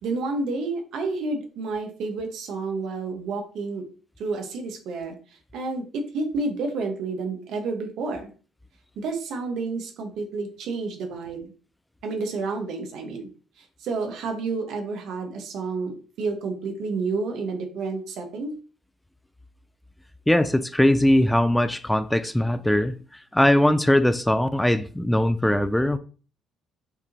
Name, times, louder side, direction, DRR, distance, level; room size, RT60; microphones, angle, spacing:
voice 1, 0.0-3.8 4.2-5.2 5.5-8.3 9.0-11.5 12.0-13.3 13.6-18.5, right 3 dB, 70° right, 1.1 m, -30 dB
voice 2, 20.3-23.0 23.3-26.0, left 1 dB, 5° left, 0.3 m, -20 dB
5.2 x 2.9 x 2.8 m
supercardioid pair, 80°, 0 cm